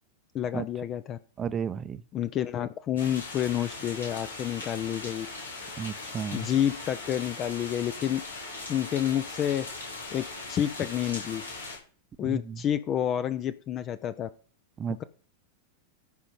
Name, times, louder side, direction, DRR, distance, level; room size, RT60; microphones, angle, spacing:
voice 1, 0.3-1.2 2.1-5.3 6.3-8.2 8.7-9.7 10.1-11.4 12.2-14.3, left 10 dB, 30° left, 0.6 m, -29 dB
voice 2, 1.4-2.0 5.8-6.5 12.2-12.4 14.8-15.0, right 7 dB, 25° right, 0.7 m, -32 dB
sound 1, 3.0-11.8, left 3 dB, 80° left, 5.3 m, -40 dB
14.0 x 5.1 x 5.3 m
figure-of-eight pair, 90°, 0 cm